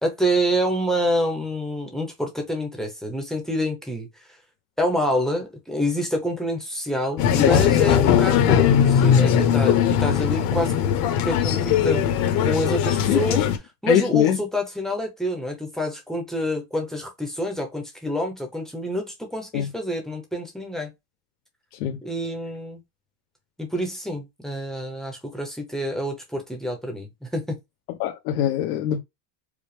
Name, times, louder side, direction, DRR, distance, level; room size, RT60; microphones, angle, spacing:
voice 1, 0.0-4.1 4.8-10.7 11.2-12.1 12.4-13.4 13.8-20.9 22.0-22.8 23.6-27.6, equal, ahead, 0.6 m, -27 dB
sound 1, 7.2-13.6, left 9 dB, 45° left, 0.8 m, -19 dB
voice 2, 13.9-14.4 19.5-19.7 21.8-22.0 28.0-29.0, left 11 dB, 90° left, 0.8 m, -22 dB
4.9 x 2.1 x 3.2 m
cardioid pair, 170°, 48 cm